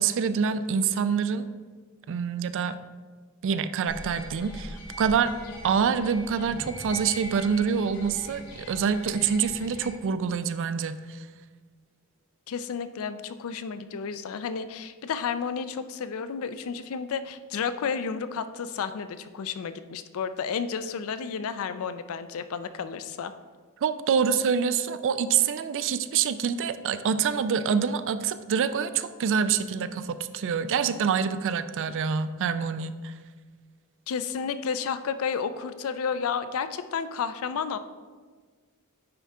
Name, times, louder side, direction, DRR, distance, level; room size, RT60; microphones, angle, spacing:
voice 1, 0.0-1.5 2.1-2.8 3.4-5.3 5.6-11.3 23.8-33.1, right 6 dB, 60° right, 12 dB, 0.3 m, -26 dB
sound 1, 3.9-9.8, equal, 90° left, 1.5 m, -42 dB
voice 2, 12.5-23.3 34.1-37.8, left 6 dB, 65° left, 11 dB, 0.4 m, -31 dB
9.6 x 3.5 x 3.6 m, 1.5 s
head